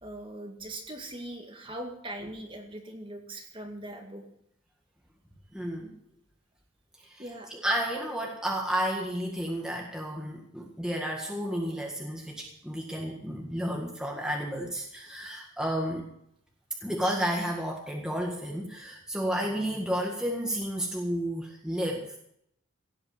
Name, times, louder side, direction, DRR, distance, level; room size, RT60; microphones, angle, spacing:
voice 1, 0.0-4.3 7.2-7.5, right 1 dB, 25° right, 3 dB, 2.1 m, -41 dB
voice 2, 5.5-6.0 7.0-7.2 7.6-16.1 16.8-22.2, equal, 5° right, 0 dB, 1.7 m, -32 dB
16.5 x 8.7 x 6.7 m, 0.72 s
head